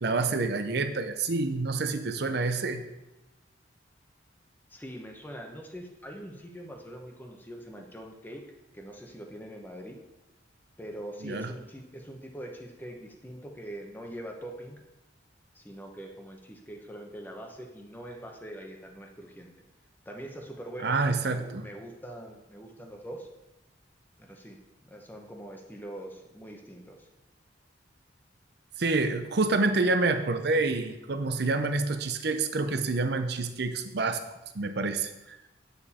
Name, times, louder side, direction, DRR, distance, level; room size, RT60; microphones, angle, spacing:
voice 1, 0.0-2.8 11.2-11.5 20.8-21.6 28.8-34.2 34.5-35.4, right 3 dB, 60° right, 9 dB, 0.7 m, -27 dB
voice 2, 4.7-8.4 8.7-10.0 10.8-14.8 15.5-19.5 20.0-23.3 24.2-24.6 24.9-27.1, right 1 dB, 10° left, 1 dB, 1.0 m, -43 dB
9.1 x 7.0 x 4.3 m, 0.99 s
head